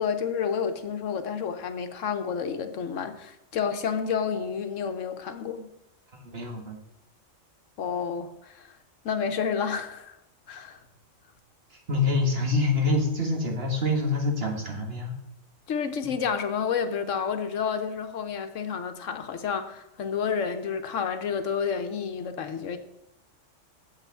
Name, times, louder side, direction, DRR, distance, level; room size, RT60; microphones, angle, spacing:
voice 1, 0.0-5.7 7.8-8.7 9.0-10.2 10.5-10.8 15.7-22.8, left 6 dB, 75° left, 8 dB, 1.2 m, -30 dB
voice 2, 6.1-6.8 11.7-15.1, left 2 dB, 50° right, 1 dB, 1.9 m, -26 dB
7.6 x 5.8 x 7.0 m, 0.87 s
omnidirectional pair, 1.3 m